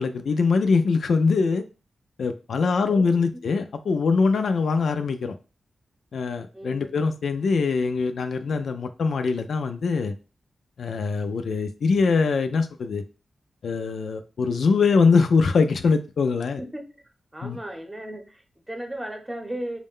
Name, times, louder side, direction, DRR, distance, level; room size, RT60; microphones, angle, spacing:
voice 1, 0.0-1.6 2.2-5.3 6.1-10.1 10.8-13.0 13.6-16.6 17.4-17.6, left 4 dB, 75° left, 8 dB, 0.3 m, -23 dB
voice 2, 2.6-3.4 6.5-7.0 14.5-14.7 16.6-17.0 17.3-19.8, right 1 dB, 15° right, 4 dB, 0.8 m, -36 dB
4.5 x 2.1 x 3.6 m, 0.35 s
wide cardioid pair, 95°, 0 cm